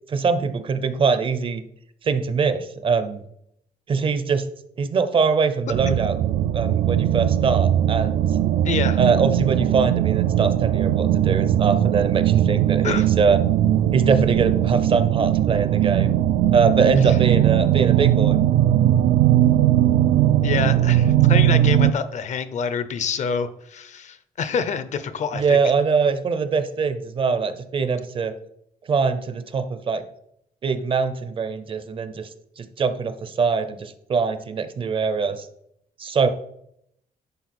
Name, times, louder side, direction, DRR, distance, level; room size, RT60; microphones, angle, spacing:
voice 1, 0.1-1.6 2.0-3.2 3.9-4.4 4.8-6.2 6.5-8.3 9.0-13.4 13.9-16.1 16.5-18.4 25.3-28.3 28.9-30.0 30.6-32.3 32.6-35.5 36.0-36.3, right 5 dB, 35° right, 11 dB, 0.5 m, -22 dB
sound 1, 5.7-21.9, right 12 dB, 85° right, 0.4 m, -19 dB
voice 2, 8.6-9.0 12.8-13.1 17.1-17.2 20.4-25.6, left 6 dB, 50° left, 12 dB, 0.6 m, -27 dB
10.5 x 4.5 x 4.2 m, 0.75 s
cardioid pair, 175°, 16 cm